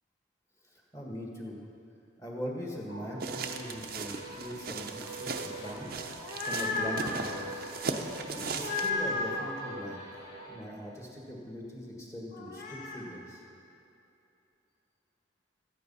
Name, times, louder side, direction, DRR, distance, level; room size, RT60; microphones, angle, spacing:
voice 1, 0.6-1.6 2.2-5.9 6.4-7.7 8.3-10.0 10.5-13.4, equal, 15° left, -2 dB, 1.7 m, -41 dB
sound 1, 2.9-10.6, right 1 dB, 80° left, 2.9 m, -44 dB
sound 2, 3.2-8.9, right 4 dB, 50° right, 0.7 m, -38 dB
sound 3, 6.0-7.1 8.5-9.5 12.3-13.0, left 3 dB, 45° left, 1.4 m, -34 dB
13.5 x 9.4 x 5.5 m, 2.8 s
head